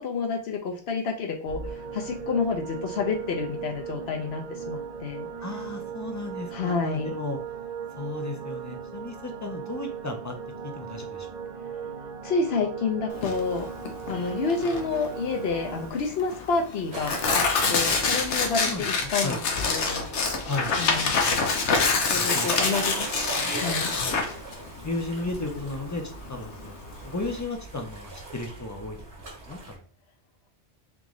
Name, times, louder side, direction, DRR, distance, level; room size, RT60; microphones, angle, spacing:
voice 1, 0.0-5.3 6.5-7.1 12.2-13.7 14.1-20.1 20.8-21.2 22.1-24.0, left 4 dB, 65° left, 3 dB, 0.9 m, -29 dB
sound 1, 1.4-15.9, right 6 dB, 45° right, 0.6 m, -37 dB
voice 2, 5.4-7.4 8.0-10.3 10.6-11.3 18.4-19.4 20.4-20.7 22.1-22.5 24.8-26.7 27.0-29.0 29.5-29.6, left 2 dB, 25° left, 4 dB, 0.4 m, -34 dB
Tearing, 13.1-27.4, left 4 dB, 90° left, 1.1 m, -27 dB
sound 2, 16.9-29.8, right 3 dB, 70° right, 1.6 m, -39 dB
3.6 x 3.0 x 3.7 m, 0.42 s
omnidirectional pair, 1.2 m